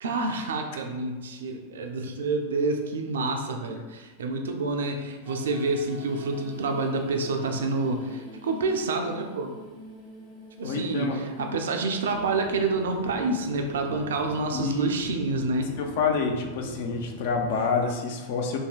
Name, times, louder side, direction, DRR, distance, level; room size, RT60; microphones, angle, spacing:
voice 1, 0.0-9.6 10.6-15.8, right 3 dB, 60° right, 4 dB, 0.3 m, -28 dB
sound 1, 5.2-17.0, equal, 35° left, 1.4 m, -47 dB
voice 2, 10.6-11.2 14.5-14.9 15.8-18.6, left 4 dB, 50° left, 3 dB, 0.4 m, -27 dB
sound 2, 12.1-17.7, left 1 dB, 65° left, 0.8 m, -43 dB
3.2 x 2.6 x 2.4 m, 1.3 s
figure-of-eight pair, 90°, 0 cm